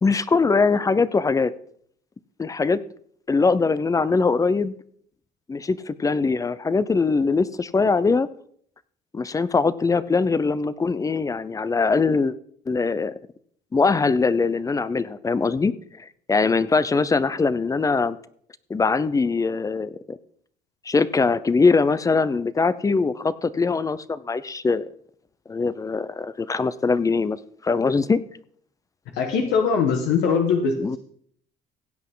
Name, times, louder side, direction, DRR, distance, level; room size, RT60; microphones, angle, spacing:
voice 1, 0.0-1.5 2.4-2.8 3.3-4.7 5.5-8.3 9.1-12.3 12.7-13.1 13.7-15.7 16.0-18.2 18.7-20.2 20.9-24.9 25.5-27.4 27.6-28.2 30.8-31.0, left 4 dB, 20° left, 16 dB, 0.5 m, -22 dB
voice 2, 29.2-31.0, left 5 dB, 90° left, 2 dB, 1.5 m, -21 dB
16.0 x 8.3 x 3.8 m, 0.63 s
cardioid pair, 110°, 17 cm